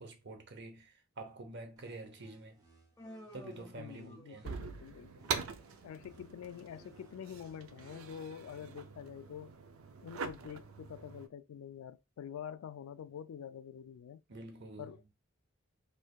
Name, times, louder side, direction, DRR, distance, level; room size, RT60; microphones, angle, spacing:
voice 1, 0.0-2.6 3.3-4.8 14.3-14.9, right 2 dB, 55° right, 0.8 m, -48 dB
sound 1, 1.8-4.8 5.2-8.2, equal, 20° right, 0.8 m, -66 dB
Human voice, 3.0-4.7, left 1 dB, 10° left, 0.4 m, -52 dB
voice 2, 3.8-5.4 5.8-9.5 10.0-14.2 14.8-15.0, left 8 dB, 85° left, 0.3 m, -47 dB
sound 2, 4.4-11.3, right 6 dB, 85° right, 0.5 m, -44 dB
3.2 x 3.2 x 2.3 m
head